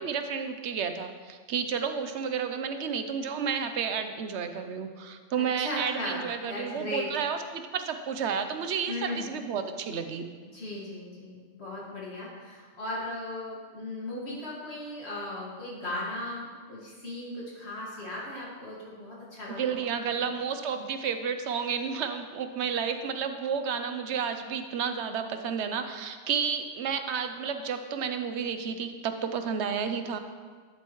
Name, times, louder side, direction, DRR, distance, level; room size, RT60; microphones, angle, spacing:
voice 1, 0.0-10.3 19.5-30.2, right 6 dB, 70° right, 8 dB, 1.0 m, -31 dB
voice 2, 5.3-7.1 8.9-9.3 10.5-20.3, left 1 dB, 60° left, -5 dB, 2.3 m, -37 dB
11.0 x 7.9 x 3.1 m, 1.5 s
omnidirectional pair, 1.2 m